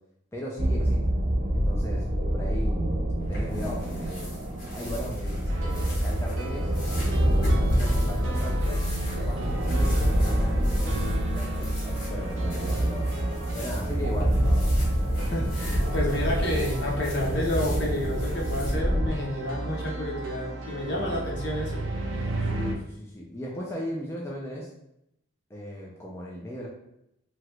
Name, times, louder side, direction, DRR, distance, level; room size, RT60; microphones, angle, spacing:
voice 1, 0.3-1.0 1.5-2.0 2.3-2.9 3.3-4.3 4.7-6.7 7.1-8.8 9.2-13.1 13.5-14.7 15.2-15.3 20.8-21.2 22.4-24.7 25.5-26.7, equal, 15° left, -4 dB, 0.4 m, -37 dB
sound 1, 0.6-19.1, equal, 45° right, 0.7 m, -26 dB
sound 2, 3.2-18.7, left 1 dB, 80° left, 1.3 m, -44 dB
sound 3, 5.5-22.8, right 1 dB, 85° right, 0.6 m, -35 dB
voice 2, 15.3-21.9, left 1 dB, 60° left, -2 dB, 0.8 m, -30 dB
2.8 x 2.4 x 3.2 m, 0.81 s
head